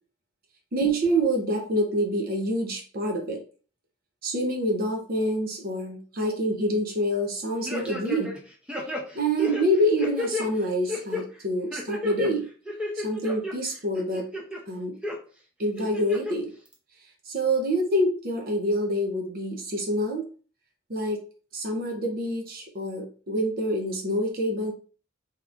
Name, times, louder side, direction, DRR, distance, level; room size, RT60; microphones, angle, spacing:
voice 1, 0.7-3.4 4.2-8.4 9.1-12.5 12.9-14.3 14.7-14.9 15.6-16.5 17.2-20.2 20.9-21.2 21.5-24.7, equal, 50° right, 2 dB, 0.6 m, -26 dB
sound 1, 7.7-8.4 8.7-10.5 10.9-11.2 11.7-12.3 12.7-13.5 13.9-14.6 15.0-15.2 15.8-16.3 16.7-16.8, left 2 dB, 5° right, 0.6 m, -31 dB
3.4 x 2.8 x 2.4 m, 0.40 s
head